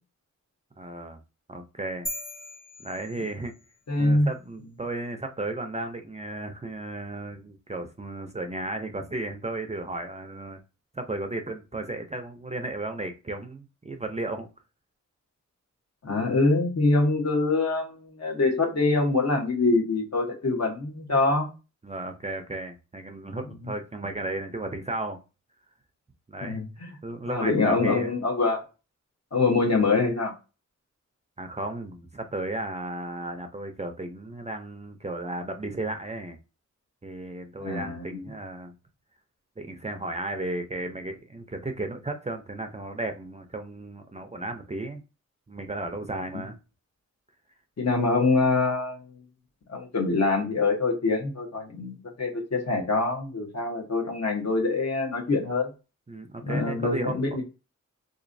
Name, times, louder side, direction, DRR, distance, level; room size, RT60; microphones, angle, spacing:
voice 1, 0.8-1.2 1.5-2.1 2.8-3.5 4.0-10.6 10.9-14.5 21.8-25.2 26.3-26.6 27.0-28.1 31.4-36.4 37.0-38.7 39.6-45.0 45.5-46.6 56.1-57.4, right 2 dB, 20° right, 6 dB, 0.5 m, -34 dB
sound 1, 2.1-3.8, left 1 dB, 25° left, 1.0 m, -39 dB
voice 2, 3.9-4.3 16.0-21.5 26.4-26.9 27.3-28.6 29.3-30.3 37.6-38.3 46.3-46.4 47.8-49.0 49.7-55.7 56.4-57.4, left 3 dB, 60° left, 1 dB, 1.2 m, -25 dB
3.8 x 3.0 x 2.6 m, 0.30 s
wide cardioid pair, 100°, 30 cm